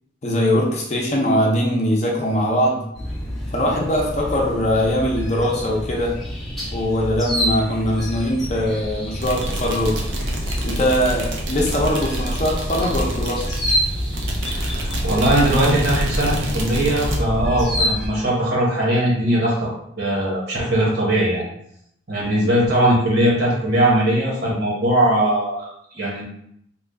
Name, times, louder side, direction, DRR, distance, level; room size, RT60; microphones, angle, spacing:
voice 1, 0.2-2.8 3.5-6.1 6.7-10.0 10.6-13.5, equal, 35° left, -2 dB, 0.6 m, -21 dB
sound 1, 2.9-18.1, equal, ahead, 0.7 m, -27 dB
sound 2, 9.2-17.2, right 1 dB, 75° right, 0.7 m, -28 dB
voice 2, 14.5-19.7 20.0-21.4 22.1-26.2, right 1 dB, 55° right, -5 dB, 1.2 m, -20 dB
3.0 x 2.3 x 3.6 m, 0.74 s
head